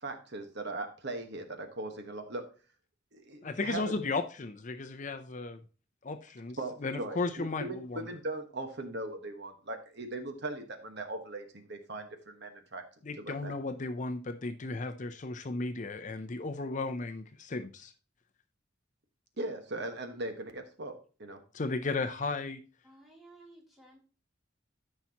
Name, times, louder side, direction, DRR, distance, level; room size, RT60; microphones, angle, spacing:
voice 1, 0.0-2.4 3.1-3.9 6.6-12.8 13.2-13.5 19.4-21.4, right 2 dB, 60° right, 6 dB, 1.4 m, -39 dB
voice 2, 3.4-5.6 6.0-8.0 13.0-17.9 21.5-22.6, left 3 dB, 40° left, 9 dB, 0.6 m, -35 dB
voice 3, 22.8-24.0, right 2 dB, ahead, -3 dB, 3.1 m, -55 dB
13.5 x 5.8 x 2.9 m, 0.36 s
head